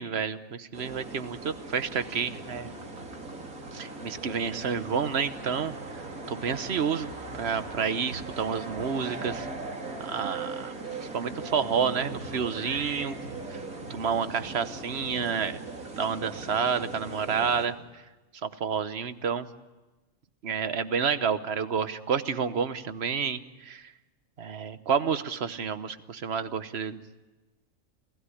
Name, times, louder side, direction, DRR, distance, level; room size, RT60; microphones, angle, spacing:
voice 1, 0.0-2.7 3.7-5.7 6.3-7.1 7.3-9.5 10.0-10.7 11.1-13.2 13.5-13.6 13.9-15.6 15.9-17.8 18.4-19.5 20.4-23.9 24.4-27.0, right 6 dB, 50° right, 12 dB, 1.2 m, -29 dB
sound 1, 0.7-17.7, right 3 dB, 85° right, 3.2 m, -39 dB
29.0 x 16.5 x 9.9 m, 1.1 s
omnidirectional pair, 1.5 m